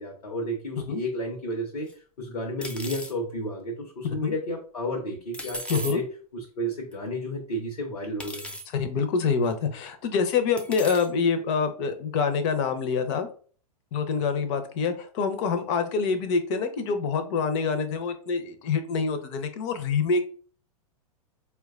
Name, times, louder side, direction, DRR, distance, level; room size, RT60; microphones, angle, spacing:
voice 1, 0.0-1.9 2.2-6.0 6.3-8.5, equal, 85° left, 0 dB, 0.8 m, -32 dB
sound 1, 1.9-2.0 2.6-3.1 5.3-5.9 6.9-7.0 8.2-8.7 9.5-9.6 10.6-11.1, equal, 5° left, 0.3 m, -36 dB
voice 2, 5.7-6.0 8.7-13.3 13.9-20.3, left 5 dB, 50° left, 8 dB, 0.6 m, -26 dB
4.4 x 2.2 x 2.4 m, 0.43 s
hypercardioid pair, 105°, 20 cm